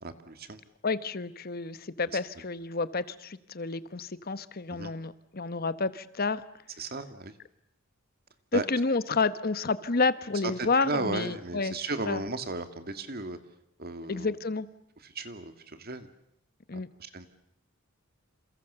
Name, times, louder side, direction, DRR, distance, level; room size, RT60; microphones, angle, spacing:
voice 1, 0.0-0.6 2.1-2.2 4.7-4.9 6.8-7.4 8.5-8.6 10.4-13.4 13.8-14.3 15.0-16.1 16.7-17.3, right 3 dB, 50° right, 9 dB, 2.3 m, -35 dB
voice 2, 0.8-6.4 8.5-11.7 12.1-12.2 14.1-14.7 16.7-16.9, left 3 dB, 50° left, 14 dB, 1.1 m, -30 dB
28.5 x 28.0 x 6.9 m, 0.78 s
head